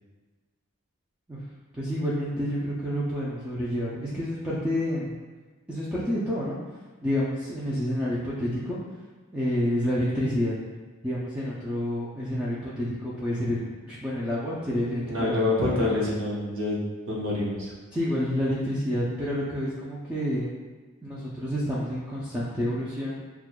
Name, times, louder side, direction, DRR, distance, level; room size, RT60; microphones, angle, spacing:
voice 1, 1.7-5.1 5.7-6.6 7.0-8.8 9.3-10.5 11.0-15.4 15.7-15.9 17.9-20.5 21.0-23.2, equal, 5° right, -8 dB, 0.4 m, -29 dB
voice 2, 15.1-16.8 17.1-17.7, left 2 dB, 60° right, -5 dB, 1.0 m, -26 dB
6.1 x 2.3 x 2.2 m, 1.3 s
head